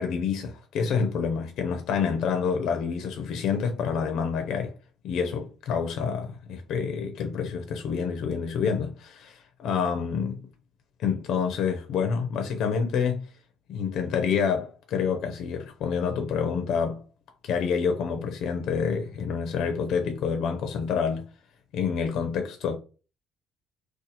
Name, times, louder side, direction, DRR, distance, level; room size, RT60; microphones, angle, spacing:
voice 1, 0.0-4.7 5.0-10.5 11.0-13.3 13.7-17.0 17.4-21.3 21.7-22.8, left 6 dB, 60° left, 0.5 m, -28 dB
2.8 x 2.4 x 4.0 m
cardioid pair, 170°, 0 cm